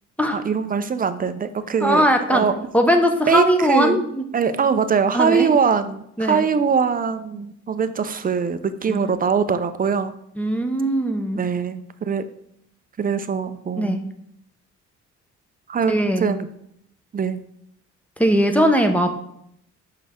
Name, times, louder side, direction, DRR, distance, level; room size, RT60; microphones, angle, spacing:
voice 1, 0.3-2.5 3.3-4.0 4.3-10.1 11.4-12.2 13.0-14.1 15.7-16.5 17.1-17.4, right 6 dB, 30° right, 11 dB, 0.5 m, -22 dB
voice 2, 1.8-2.5 2.7-4.3 5.1-5.5 6.2-6.4 8.9-9.0 10.4-11.4 13.8-14.0 15.9-16.3 18.2-19.1, equal, 5° left, 5 dB, 0.8 m, -19 dB
6.1 x 5.6 x 3.6 m, 0.73 s
cardioid pair, 90°, 30 cm